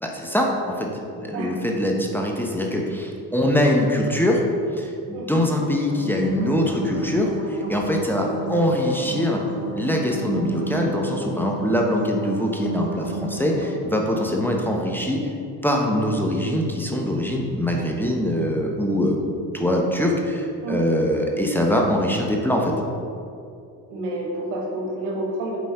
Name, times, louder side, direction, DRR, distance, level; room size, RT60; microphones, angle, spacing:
voice 1, 0.0-0.9 1.2-4.4 4.8-9.4 9.7-15.2 15.6-19.2 19.5-22.7, left 1 dB, 5° left, 0 dB, 1.1 m, -23 dB
sound 1, 5.7-13.7, right 2 dB, 25° right, 1.3 m, -34 dB
voice 2, 23.9-25.6, right 2 dB, 80° right, -1 dB, 1.4 m, -29 dB
7.6 x 4.2 x 4.4 m, 2.5 s
hypercardioid pair, 55°, 46 cm